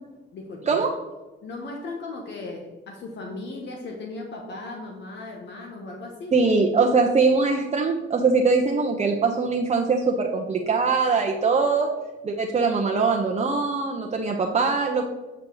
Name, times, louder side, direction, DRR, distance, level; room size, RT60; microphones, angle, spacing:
voice 1, 0.3-0.8 1.4-6.3, left 3 dB, 65° left, 1 dB, 1.2 m, -37 dB
voice 2, 6.3-11.9 12.2-15.1, right 4 dB, 35° right, 1 dB, 0.8 m, -22 dB
8.8 x 4.7 x 3.9 m, 1.1 s
cardioid pair, 90°, 20 cm